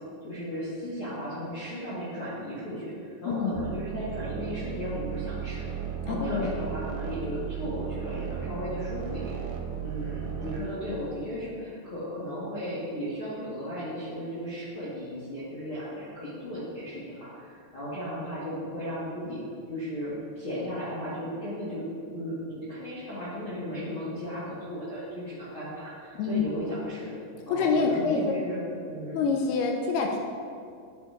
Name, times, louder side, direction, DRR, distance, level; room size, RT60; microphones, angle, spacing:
voice 1, 0.2-5.7 6.0-9.4 9.8-19.4 19.7-27.2 27.4-28.6 28.9-29.2, equal, 60° left, -11 dB, 1.4 m, -35 dB
voice 2, 3.3-3.6 6.1-6.6 26.2-26.4 27.5-28.3 29.1-30.2, left 4 dB, 80° left, 2 dB, 2.4 m, -26 dB
sound 1, 3.6-10.6, right 8 dB, 75° right, 2.5 m, -35 dB
9.8 x 7.6 x 2.5 m, 2.3 s
omnidirectional pair, 4.8 m